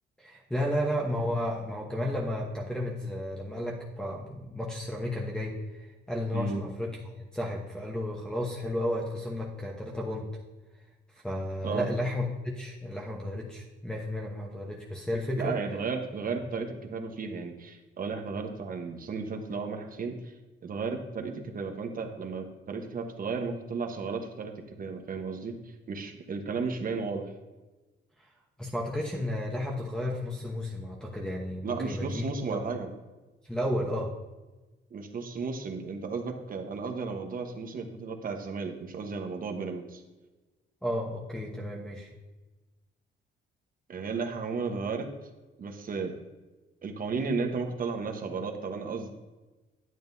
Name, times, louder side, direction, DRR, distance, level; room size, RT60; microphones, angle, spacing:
voice 1, 0.2-10.3 11.1-15.5 28.6-32.6 33.4-34.1 40.8-42.1, left 1 dB, 5° left, -4 dB, 1.0 m, -33 dB
voice 2, 6.3-6.7 11.6-11.9 15.4-20.3 20.6-27.3 31.6-32.9 34.9-40.0 43.9-45.1 45.6-46.2 46.8-49.1, right 4 dB, 45° right, 4 dB, 1.1 m, -34 dB
9.3 x 8.6 x 2.7 m, 1.2 s
cardioid pair, 90°, 20 cm